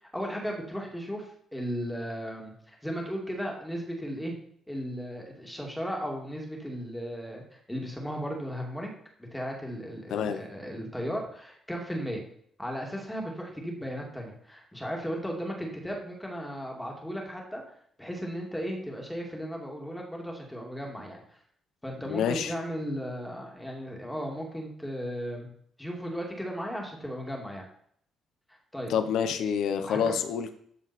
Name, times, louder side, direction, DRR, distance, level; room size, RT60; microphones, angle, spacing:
voice 1, 0.0-4.3 4.7-8.9 9.2-12.2 12.6-17.6 18.0-21.4 21.8-25.5 25.8-27.6 28.7-28.9 29.9-30.1, equal, 5° left, 0 dB, 2.3 m, -36 dB
voice 2, 10.1-10.4 22.1-22.5 28.9-30.5, left 7 dB, 70° left, 9 dB, 0.9 m, -27 dB
12.5 x 7.1 x 4.3 m, 0.65 s
cardioid pair, 160°, 0 cm